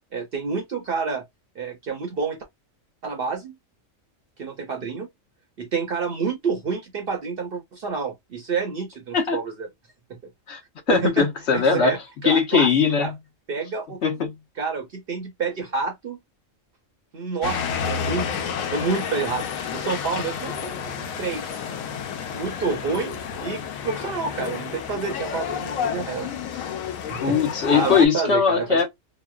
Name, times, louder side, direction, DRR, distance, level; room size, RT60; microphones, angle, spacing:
voice 1, 0.1-1.2 1.6-2.4 3.0-3.5 4.4-5.1 5.6-9.7 10.1-10.2 10.9-11.3 11.5-12.0 12.2-12.7 13.0-13.1 13.5-14.0 14.6-16.2 17.1-21.6 22.3-23.2 23.4-26.7 27.1-27.4 27.7-28.9, right 5 dB, 55° right, 0.7 m, -28 dB
voice 2, 10.9-11.9 12.2-13.2 14.0-14.4 27.2-28.9, left 6 dB, 60° left, 1.0 m, -20 dB
sound 1, 17.4-28.1, left 7 dB, 85° left, 1.0 m, -30 dB
2.9 x 2.1 x 2.3 m
omnidirectional pair, 1.4 m